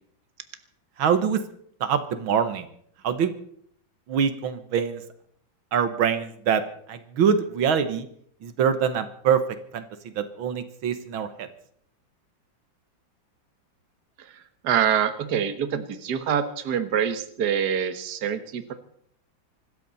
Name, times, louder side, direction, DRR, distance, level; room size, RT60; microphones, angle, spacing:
voice 1, 1.0-1.4 1.8-2.7 3.0-3.3 4.1-5.0 5.7-6.6 6.9-8.1 8.4-9.4 9.7-9.8 10.2-11.5, right 7 dB, 85° right, 10 dB, 2.0 m, -24 dB
voice 2, 14.6-18.7, right 8 dB, 55° right, 10 dB, 1.8 m, -25 dB
25.0 x 13.5 x 4.1 m, 0.65 s
omnidirectional pair, 2.2 m